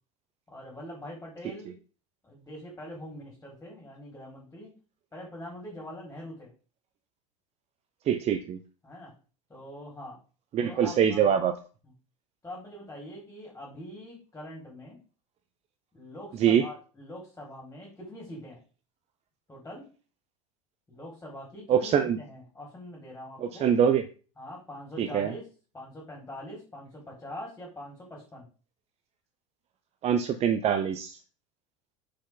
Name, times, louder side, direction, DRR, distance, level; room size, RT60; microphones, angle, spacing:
voice 1, 0.5-1.7 2.2-4.7 5.1-6.5 8.8-9.1 9.5-10.2 10.6-11.3 11.8-11.9 12.4-15.0 15.9-18.6 19.5-19.9 20.9-23.7 24.4-25.4 25.7-28.5, left 1 dB, 15° left, -2 dB, 4.9 m, -43 dB
voice 2, 8.1-8.6 10.5-11.5 16.4-16.7 21.7-22.2 23.4-24.0 25.0-25.3 30.0-31.2, right 8 dB, 40° right, 9 dB, 0.9 m, -24 dB
7.9 x 6.8 x 3.9 m, 0.36 s
hypercardioid pair, 85°, 16 cm